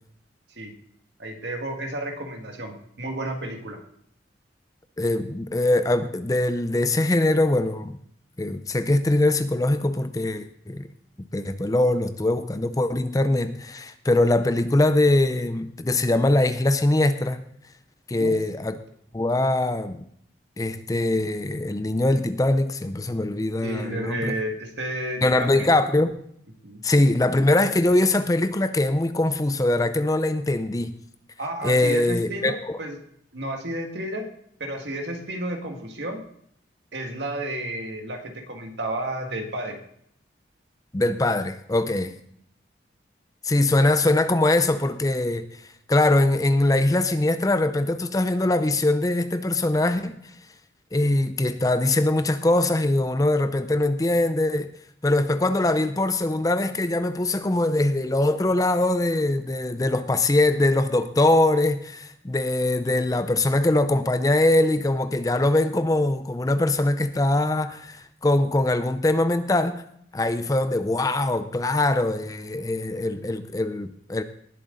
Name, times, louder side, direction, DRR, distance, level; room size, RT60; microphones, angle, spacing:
voice 1, 1.2-3.8 18.2-18.3 23.6-25.7 26.6-26.8 31.4-33.0 33.3-34.3 34.6-36.2 36.9-39.8, right 1 dB, 70° right, 1.9 m, -32 dB
voice 2, 5.0-8.0 8.4-10.9 11.3-17.4 18.1-18.8 19.1-20.1 20.6-24.4 25.2-26.2 26.8-31.0 31.6-32.8 40.9-42.1 43.4-50.2 50.9-54.7 55.0-69.8 70.1-74.2, left 2 dB, 20° left, 0.5 m, -22 dB
19.0 x 7.6 x 3.9 m
head